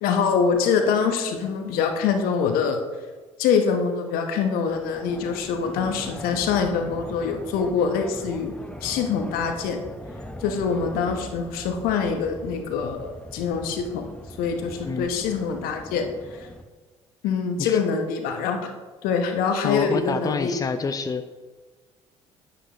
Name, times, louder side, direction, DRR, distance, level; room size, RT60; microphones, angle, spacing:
voice 1, 0.0-2.8 3.4-8.5 8.8-9.8 10.4-14.1 14.4-16.0 16.4-16.5 17.2-18.7 19.0-20.5, left 6 dB, 65° left, 5 dB, 1.2 m, -24 dB
sound 1, 4.7-16.6, left 1 dB, 5° left, 1.1 m, -40 dB
voice 2, 19.6-21.2, left 4 dB, 20° left, 10 dB, 0.6 m, -27 dB
10.0 x 9.2 x 3.1 m, 1.4 s
figure-of-eight pair, 50°, 16 cm